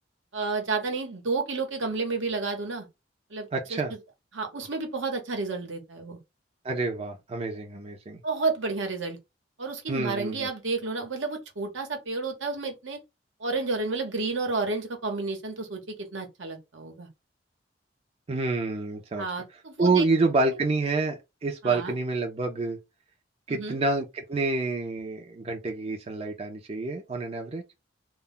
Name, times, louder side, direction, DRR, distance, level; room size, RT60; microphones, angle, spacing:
voice 1, 0.3-2.9 3.3-3.8 4.3-6.2 8.2-9.2 9.6-13.0 13.4-17.1 19.2-20.1 21.6-21.9 23.5-23.8, right 3 dB, 85° right, 0.9 m, -31 dB
voice 2, 3.5-3.9 6.6-8.2 9.9-10.5 18.3-19.3 19.8-22.8 23.5-27.6, right 3 dB, 35° right, 0.4 m, -28 dB
2.2 x 2.1 x 3.6 m
head